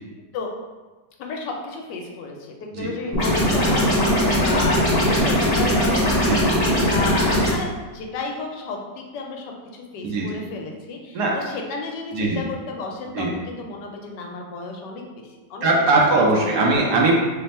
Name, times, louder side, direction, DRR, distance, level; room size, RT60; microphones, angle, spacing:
voice 1, 1.2-15.7 16.1-16.8, left 3 dB, 75° left, 1 dB, 1.2 m, -33 dB
sound 1, 3.1-7.5, equal, 35° left, 0.7 m, -20 dB
voice 2, 15.6-17.1, right 3 dB, 70° right, -2 dB, 1.2 m, -20 dB
3.3 x 2.2 x 4.1 m, 1.2 s
omnidirectional pair, 1.9 m